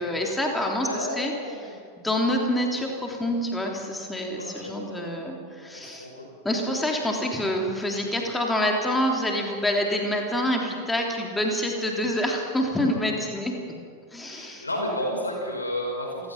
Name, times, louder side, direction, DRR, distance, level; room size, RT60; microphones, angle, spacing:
voice 1, 0.0-1.3 1.6-6.1 6.4-13.5 14.1-14.6, left 1 dB, 10° left, 1 dB, 3.2 m, -27 dB
voice 2, 0.9-1.8 4.4-5.1 5.7-6.3 14.3-16.3, left 1 dB, 80° left, 0 dB, 5.7 m, -32 dB
29.0 x 16.5 x 5.9 m, 2.1 s
figure-of-eight pair, 90°, 0 cm